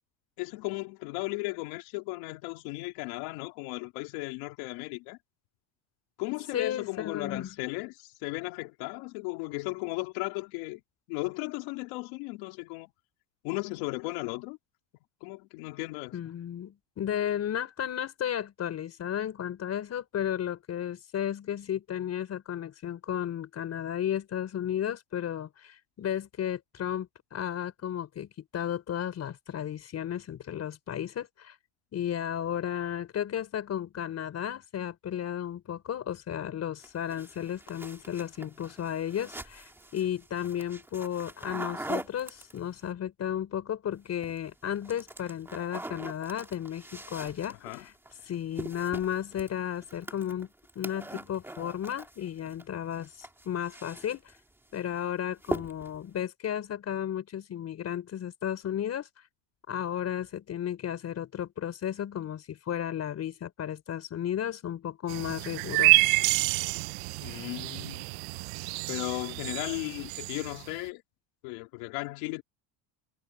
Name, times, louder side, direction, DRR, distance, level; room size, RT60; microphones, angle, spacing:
voice 1, 0.4-5.2 6.2-10.8 11.1-12.9 13.4-14.6 15.2-16.2 47.6-47.9 67.2-68.0 68.9-71.0 71.4-72.4, left 25 dB, 65° left, 3.4 m, -36 dB
voice 2, 6.5-7.5 16.1-31.6 31.9-47.9 48.2-50.5 50.7-54.4 54.7-59.3 59.7-66.1, left 10 dB, 30° left, 4.9 m, -34 dB
sound 1, 36.8-42.9 44.0-44.5 44.8-52.6 52.9-54.4 54.7-55.0 55.4-56.0, right 1 dB, 5° right, 2.0 m, -42 dB
sound 2, 65.1-70.7, right 25 dB, 60° right, 0.7 m, -28 dB
cardioid pair, 150°, 50 cm